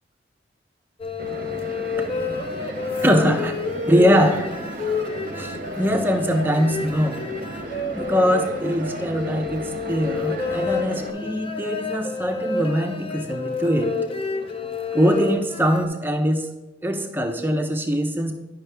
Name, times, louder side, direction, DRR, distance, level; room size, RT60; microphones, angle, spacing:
sound 1, 1.0-15.8, left 4 dB, 30° left, 0.6 m, -29 dB
sound 2, 1.2-11.1, right 2 dB, 45° right, 0.7 m, -35 dB
voice 1, 3.0-3.5 3.9-4.5 5.4-7.3 7.9-14.0 14.9-16.5 16.8-18.3, equal, 10° right, 4 dB, 0.6 m, -22 dB
10.5 x 5.6 x 3.4 m, 1.1 s
head